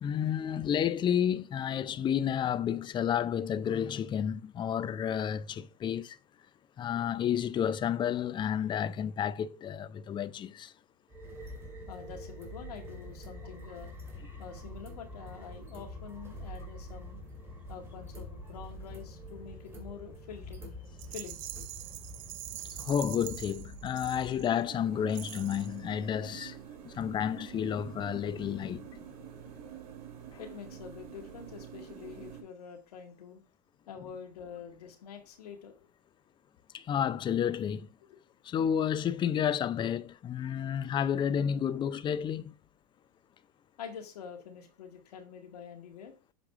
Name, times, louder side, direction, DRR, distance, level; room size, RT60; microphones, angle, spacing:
voice 1, 0.0-6.2 6.8-10.7 22.8-26.6 26.8-28.9 36.7-37.9 38.5-42.5, left 9 dB, 25° left, 0.4 m, -31 dB
sound 1, 11.1-24.4, equal, 15° right, 2.2 m, -45 dB
voice 2, 11.9-13.9 14.4-17.2 17.7-20.7 21.1-21.4 30.4-33.4 33.9-35.8 38.1-38.2 43.8-46.1, left 7 dB, 80° left, 2.0 m, -46 dB
Rattle, 21.0-24.6 25.1-25.8, right 16 dB, 45° right, 0.5 m, -44 dB
sound 2, 24.5-32.4, right 9 dB, 75° right, 1.8 m, -47 dB
7.2 x 5.2 x 3.5 m
hypercardioid pair, 110°, 20 cm